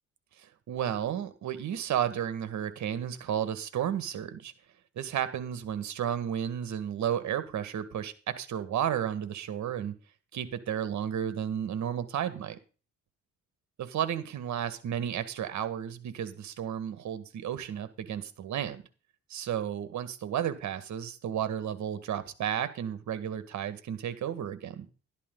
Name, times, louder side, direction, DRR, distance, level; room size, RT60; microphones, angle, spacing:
voice 1, 0.4-4.5 5.0-9.9 10.3-12.6 13.8-18.8 19.3-24.9, right 9 dB, 70° right, 1.9 m, -33 dB
12.5 x 12.0 x 4.0 m
cardioid pair, 90°, 30 cm